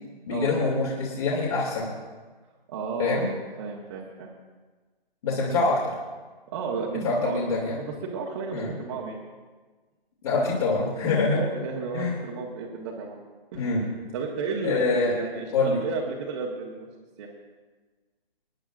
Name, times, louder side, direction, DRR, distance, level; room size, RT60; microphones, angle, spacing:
voice 1, 0.3-1.9 3.0-3.3 5.2-5.8 7.0-7.8 8.5-8.7 10.2-11.4 11.9-12.2 13.5-13.8 14.6-15.1 15.5-15.8, left 3 dB, 40° left, -4 dB, 2.7 m, -25 dB
voice 2, 2.7-3.3 3.6-4.3 6.5-7.4 7.8-9.2 11.2-13.2 13.5-13.7 14.1-16.9 17.2-17.3, right 5 dB, 30° right, -3 dB, 1.5 m, -33 dB
26.5 x 10.5 x 2.5 m, 1.3 s
figure-of-eight pair, 150°, 30 cm